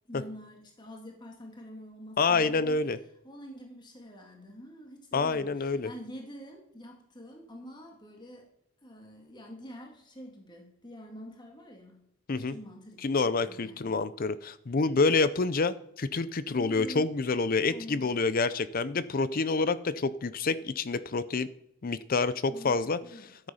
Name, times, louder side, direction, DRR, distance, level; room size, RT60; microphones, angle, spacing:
voice 1, 0.1-2.8 3.2-8.5 8.8-14.0 16.5-17.1 17.7-18.1 22.5-22.7 23.0-23.3, equal, 20° left, 1 dB, 2.0 m, -46 dB
voice 2, 2.2-3.0 5.1-5.9 12.3-12.5 13.0-21.5 21.8-23.0, left 4 dB, 40° left, 15 dB, 0.5 m, -27 dB
13.5 x 7.9 x 5.6 m, 0.78 s
head